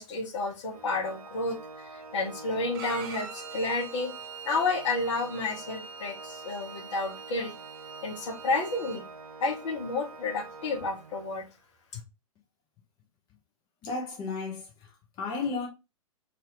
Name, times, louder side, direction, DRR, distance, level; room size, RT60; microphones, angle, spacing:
voice 1, 0.0-4.1 4.4-7.5 8.0-9.1 9.4-11.5 11.9-12.0, left 3 dB, 55° left, 0.9 m, -31 dB
Organ, 0.7-11.5, right 3 dB, 80° right, 0.5 m, -46 dB
Bowed string instrument, 2.7-9.0, right 7 dB, 35° right, 0.6 m, -44 dB
voice 2, 13.8-15.7, left 4 dB, 25° left, 0.7 m, -34 dB
2.8 x 2.5 x 3.0 m
figure-of-eight pair, 115°, 19 cm